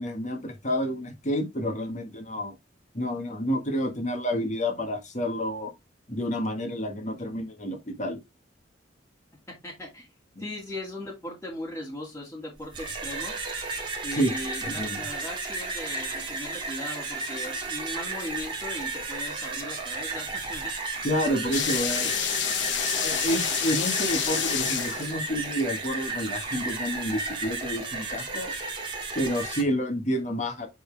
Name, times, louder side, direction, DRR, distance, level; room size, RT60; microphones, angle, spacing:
voice 1, 0.0-2.5 2.9-5.7 6.1-8.2 10.3-10.4 14.1-14.3 14.6-15.0 21.0-22.1 23.0-28.5 29.1-30.7, equal, 40° left, 1.7 m, -29 dB
voice 2, 9.6-10.1 10.4-13.3 14.0-20.7, left 1 dB, 15° left, 2.4 m, -38 dB
sound 1, 12.6-29.6, right 3 dB, 25° right, 2.0 m, -33 dB
sound 2, 21.5-25.4, left 8 dB, 80° left, 1.2 m, -28 dB
8.5 x 4.3 x 3.4 m
head